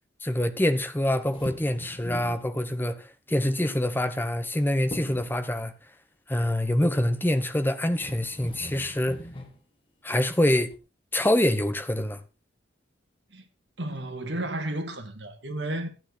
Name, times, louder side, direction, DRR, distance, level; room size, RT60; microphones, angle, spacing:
voice 1, 0.2-5.7 6.3-9.2 10.0-10.7 11.1-12.2, left 1 dB, 10° left, 0.8 m, -25 dB
sound 1, 1.1-2.5 4.0-4.6 4.9-5.4 7.4-7.5 7.9-9.6 10.4-10.8, equal, 30° left, 1.5 m, -41 dB
voice 2, 13.8-15.9, right 1 dB, 70° right, 2.0 m, -32 dB
13.0 x 9.1 x 4.0 m
head